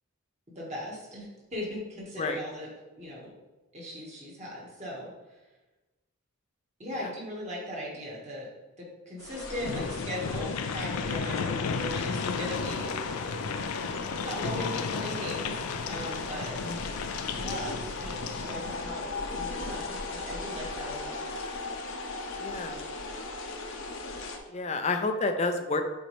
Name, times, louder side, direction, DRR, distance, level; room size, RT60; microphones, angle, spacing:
voice 1, 0.6-1.3 1.5-2.7 3.0-3.3 3.7-5.1 6.8-8.5 8.8-12.9 14.2-16.6 17.3-21.6, equal, 30° right, -4 dB, 1.8 m, -38 dB
sound 1, 9.2-24.4, left 3 dB, 60° left, 0.8 m, -37 dB
sound 2, 9.6-18.8, left 5 dB, 80° left, 0.4 m, -34 dB
voice 2, 11.3-11.6 16.6-16.9 22.4-22.8 24.5-25.8, left 3 dB, 30° left, 6 dB, 0.5 m, -30 dB
7.7 x 4.4 x 3.3 m, 1.1 s
head